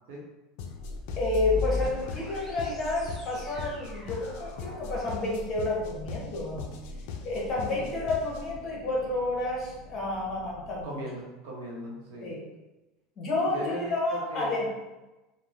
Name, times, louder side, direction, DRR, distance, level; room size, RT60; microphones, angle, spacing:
sound 1, 0.6-8.6, left 5 dB, 65° left, 0.3 m, -40 dB
sound 2, 0.8-10.8, left 2 dB, ahead, 1.3 m, -40 dB
voice 1, 1.2-6.7 7.2-11.0 12.2-12.4 13.2-14.7, left 2 dB, 35° left, -4 dB, 0.9 m, -30 dB
voice 2, 10.8-12.3 13.5-14.7, right 1 dB, 75° right, -2 dB, 0.7 m, -39 dB
3.0 x 2.1 x 2.5 m, 1.0 s
supercardioid pair, 160°, 0 cm